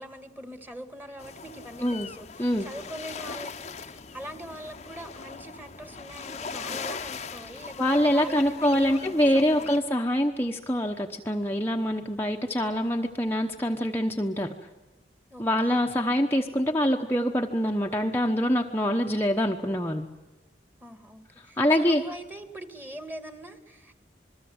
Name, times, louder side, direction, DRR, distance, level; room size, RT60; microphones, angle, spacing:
voice 1, 0.0-9.8 15.3-15.8 20.8-24.0, right 1 dB, 10° right, 8 dB, 2.0 m, -42 dB
sound 1, 1.2-9.8, left 5 dB, 40° left, 0.9 m, -40 dB
voice 2, 7.8-14.5 15.4-20.1 21.4-22.0, equal, 15° left, 1 dB, 1.0 m, -25 dB
27.5 x 21.5 x 8.0 m, 1.1 s
head